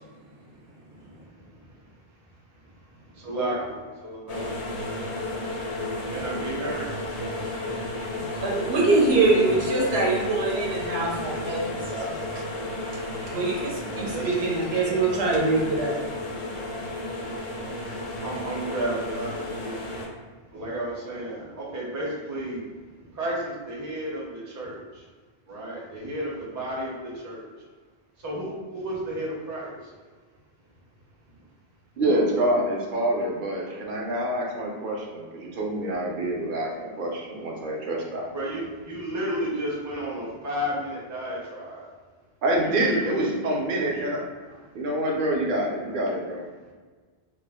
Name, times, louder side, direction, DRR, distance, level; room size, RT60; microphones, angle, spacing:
voice 1, 1.0-1.8 2.9-4.5 6.1-7.0 13.8-14.4 14.9-15.0 18.2-20.2 20.5-22.6 22.9-25.0 25.5-27.5 28.2-29.9 38.3-41.9 42.8-43.6 43.9-44.1, right 1 dB, 25° right, -5 dB, 0.5 m, -33 dB
sound 1, 4.3-20.1, left 1 dB, 50° left, 0.4 m, -33 dB
voice 2, 8.3-12.4 12.9-16.0, right 3 dB, 85° right, -2 dB, 0.9 m, -24 dB
voice 3, 32.0-38.3 42.4-44.2 44.7-46.5, right 1 dB, 60° right, -2 dB, 0.7 m, -26 dB
2.3 x 2.0 x 3.4 m, 1.4 s
omnidirectional pair, 1.1 m